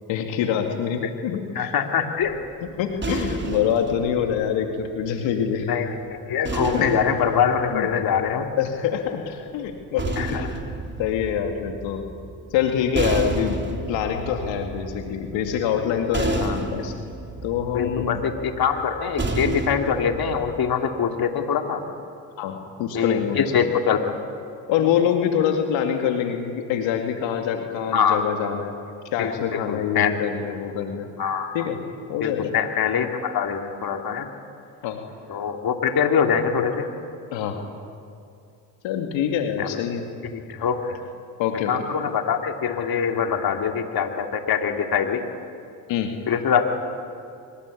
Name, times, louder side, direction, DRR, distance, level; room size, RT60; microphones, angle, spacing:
voice 1, 0.1-1.7 2.8-5.8 6.7-6.9 7.7-7.9 8.6-10.5 11.0-12.0 12.5-17.0 17.4-18.2 22.4-23.6 24.7-28.8 29.1-31.1 31.5-31.8 32.1-32.5 34.8-35.0 37.3-37.6 38.8-40.0 41.4-41.7 45.9-46.1, left 8 dB, 70° left, 4 dB, 2.5 m, -25 dB
voice 2, 1.5-2.4 5.7-8.5 10.2-10.5 16.4-16.6 17.7-21.8 22.9-24.2 24.8-24.9 27.9-28.2 29.2-30.2 31.2-31.6 32.2-34.3 35.3-36.9 39.6-39.8 40.2-41.0 41.7-45.2 46.3-46.6, left 7 dB, 50° left, 4 dB, 2.9 m, -24 dB
sound 1, 2.2-5.5 6.4-8.7 9.7-20.7, right 3 dB, 25° right, 3.3 m, -31 dB
25.0 x 23.0 x 8.6 m, 2.5 s
hypercardioid pair, 70°, 47 cm